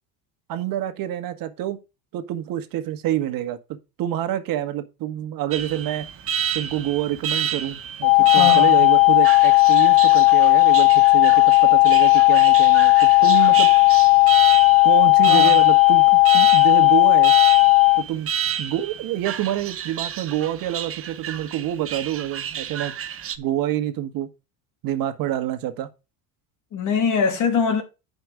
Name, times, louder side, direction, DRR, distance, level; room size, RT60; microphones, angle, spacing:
voice 1, 0.5-1.8 2.1-6.0 6.5-13.7 14.8-17.4 18.0-18.3 18.6-22.9 23.4-24.3 24.8-25.9, right 12 dB, 60° right, 1.4 m, -27 dB
Alarm, 5.5-23.4, right 8 dB, 35° right, 1.0 m, -30 dB
sound 1, 8.0-18.0, left 25 dB, 85° left, 0.6 m, -14 dB
voice 2, 8.2-8.8 15.3-15.6 26.7-27.8, left 6 dB, 50° left, 2.6 m, -23 dB
9.5 x 5.2 x 4.9 m
supercardioid pair, 105°, 39 cm